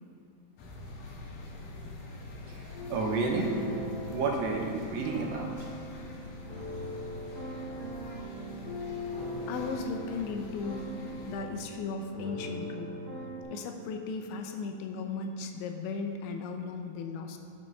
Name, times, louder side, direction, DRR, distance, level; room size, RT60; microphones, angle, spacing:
sound 1, 0.6-11.4, left 2 dB, 65° left, 2.5 m, -45 dB
sound 2, 2.7-13.4, equal, 30° left, 1.7 m, -40 dB
voice 1, 2.9-3.5 4.1-5.5, right 4 dB, 80° right, 0 dB, 2.9 m, -30 dB
voice 2, 9.5-10.9 11.3-13.0 13.5-17.4, left 4 dB, 85° left, 4 dB, 3.1 m, -36 dB
11.5 x 5.1 x 5.4 m, 2.5 s
omnidirectional pair, 5.2 m